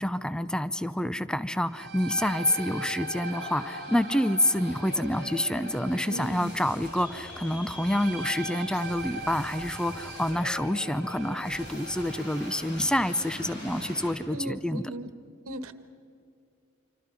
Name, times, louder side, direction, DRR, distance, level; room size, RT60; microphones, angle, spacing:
voice 1, 0.0-14.9, left 1 dB, 5° left, 14 dB, 0.6 m, -28 dB
sound 1, 1.5-13.0, right 2 dB, 45° right, 1.7 m, -41 dB
sound 2, 2.3-14.1, left 1 dB, 55° left, 7.8 m, -43 dB
voice 2, 6.1-6.5 14.3-15.1 15.5-15.7, right 1 dB, 85° right, 11 dB, 1.5 m, -36 dB
27.0 x 25.5 x 5.5 m, 2.4 s
head